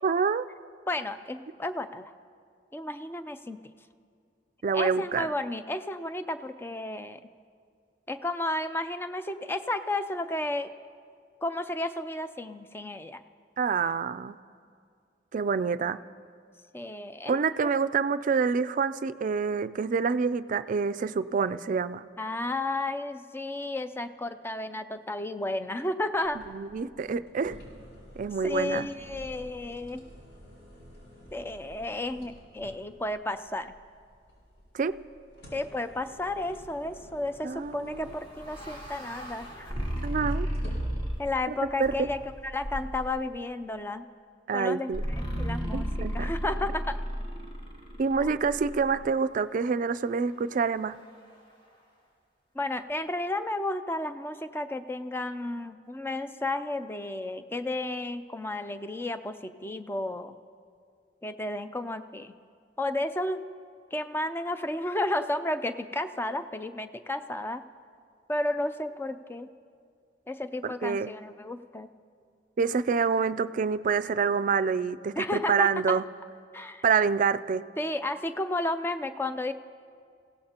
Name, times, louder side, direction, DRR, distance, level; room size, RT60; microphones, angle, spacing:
voice 1, 0.0-0.5 4.6-5.3 13.6-14.4 15.3-16.0 17.3-22.0 26.5-27.6 28.2-28.9 34.7-35.0 37.4-38.1 40.0-40.5 41.5-41.6 41.8-42.1 44.5-45.0 45.7-46.3 48.0-51.0 70.6-71.1 72.6-76.0 76.8-77.6, right 5 dB, 45° right, 13 dB, 0.4 m, -27 dB
voice 2, 0.9-2.1 2.7-3.6 4.7-7.2 8.1-10.7 11.4-13.2 16.7-17.7 22.2-26.4 28.4-30.0 31.3-33.7 35.5-39.7 41.2-42.2 42.5-44.0 44.5-47.0 48.2-48.4 52.5-60.3 61.2-62.3 62.8-63.4 63.9-67.6 68.3-69.5 70.3-71.9 75.2-76.0 76.5-76.8 77.8-79.5, left 2 dB, 15° left, 10 dB, 0.5 m, -32 dB
sound 1, 26.2-43.1, equal, 85° left, 4.9 m, -47 dB
sound 2, 38.0-41.4 41.8-42.4 44.9-49.0, equal, 30° left, 2.1 m, -34 dB
27.0 x 16.5 x 2.9 m, 2.2 s
head